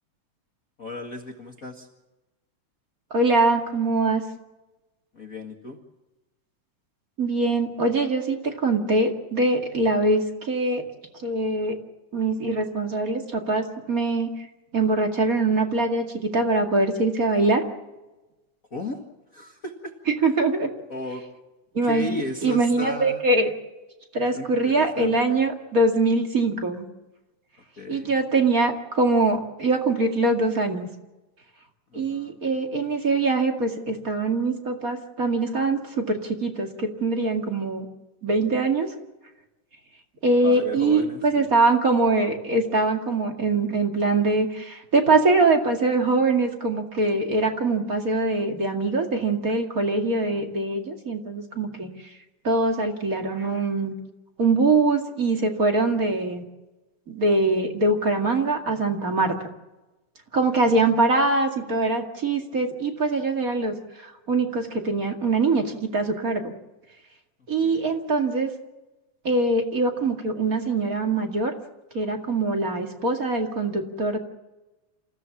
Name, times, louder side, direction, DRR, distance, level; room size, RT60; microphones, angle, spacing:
voice 1, 0.8-1.9 5.1-5.8 18.7-19.0 19.3-19.9 20.2-20.3 20.9-21.2 21.8-23.2 24.3-25.4 27.8-28.2 31.9-32.3 40.4-41.5 67.6-67.8, left 3 dB, 35° left, 2 dB, 1.6 m, -35 dB
voice 2, 3.1-4.2 7.2-10.8 11.2-11.8 12.1-14.3 14.7-17.6 20.2-20.7 21.7-22.1 22.4-23.5 24.1-26.8 27.9-30.9 31.9-37.9 38.2-38.9 40.2-51.9 52.4-53.9 54.4-56.4 57.1-59.3 60.3-65.7 65.9-66.4 67.5-68.5 69.2-71.5 71.9-74.2, right 3 dB, 30° right, 3 dB, 2.2 m, -23 dB
28.0 x 16.0 x 7.3 m, 1.1 s
omnidirectional pair, 3.6 m